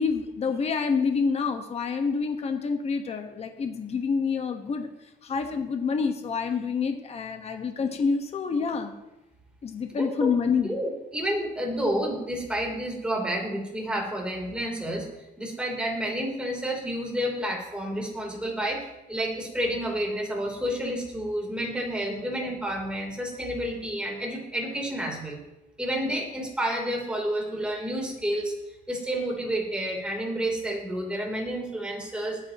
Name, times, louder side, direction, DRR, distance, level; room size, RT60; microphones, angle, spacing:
voice 1, 0.0-4.9 5.2-8.9 9.6-10.8 22.1-22.3 26.0-26.1, left 5 dB, 40° left, 6 dB, 1.3 m, -27 dB
voice 2, 10.0-10.3 10.6-15.1 15.4-25.4 25.8-28.5 28.9-32.4, equal, 5° right, -1 dB, 3.3 m, -30 dB
21.0 x 8.6 x 3.0 m, 0.93 s
cardioid pair, 110°, 17 cm